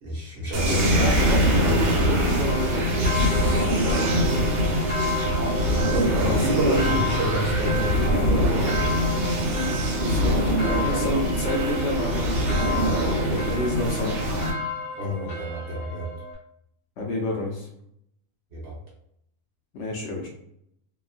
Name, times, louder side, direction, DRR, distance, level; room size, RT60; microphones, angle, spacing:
voice 1, 0.0-1.0 5.9-8.8 15.0-16.1 18.5-18.8, equal, 55° right, -3 dB, 1.0 m, -28 dB
sound 1, 0.5-14.5, equal, 80° right, 1.2 m, -23 dB
voice 2, 0.6-3.3 6.3-7.1 9.5-10.5 10.8-12.6 13.2-14.2 17.0-17.7 19.7-20.3, left 1 dB, 65° left, -1 dB, 0.8 m, -30 dB
sound 2, 2.4-16.3, left 1 dB, 30° left, 0.8 m, -33 dB
2.8 x 2.3 x 2.4 m, 0.74 s
omnidirectional pair, 1.4 m